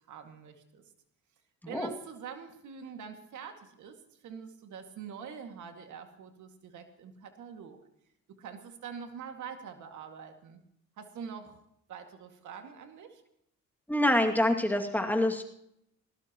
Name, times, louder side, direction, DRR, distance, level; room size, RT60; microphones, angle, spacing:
voice 1, 0.1-0.8 1.7-7.8 8.4-10.6 11.0-11.6 11.9-13.2, right 7 dB, 75° right, 5 dB, 2.3 m, -45 dB
voice 2, 13.9-15.4, left 1 dB, 5° left, 3 dB, 2.4 m, -26 dB
19.5 x 18.5 x 3.1 m, 0.74 s
cardioid pair, 90°, 30 cm